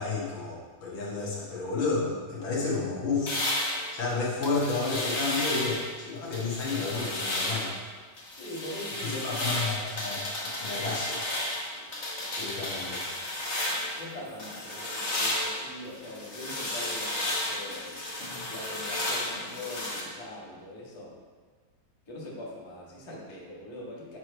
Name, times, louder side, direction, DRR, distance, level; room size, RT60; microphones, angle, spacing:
voice 1, 0.0-3.4 3.9-7.7 9.0-11.2 12.4-13.0, left 3 dB, 85° left, -5 dB, 2.2 m, -31 dB
sound 1, 3.3-5.9 6.3-7.8 8.2-14.0 14.4-20.0, left 1 dB, 40° left, 1.2 m, -33 dB
voice 2, 8.4-9.9 14.0-18.1 18.5-21.2 22.1-24.2, left 1 dB, 20° left, -5 dB, 1.0 m, -42 dB
7.5 x 3.1 x 5.4 m, 1.5 s
omnidirectional pair, 2.1 m